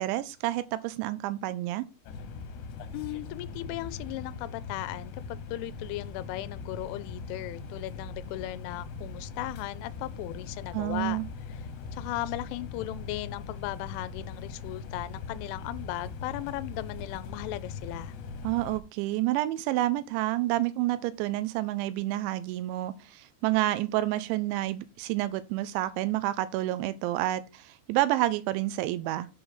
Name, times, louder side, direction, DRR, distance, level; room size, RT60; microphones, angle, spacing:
voice 1, 0.0-1.9 10.7-11.3 18.4-29.3, right 15 dB, 85° right, 2.8 m, -29 dB
sound 1, 2.1-18.8, left 4 dB, 75° left, 3.1 m, -40 dB
voice 2, 2.9-11.2 11.5-18.2, left 16 dB, 90° left, 3.0 m, -37 dB
7.8 x 3.9 x 6.7 m
omnidirectional pair, 5.5 m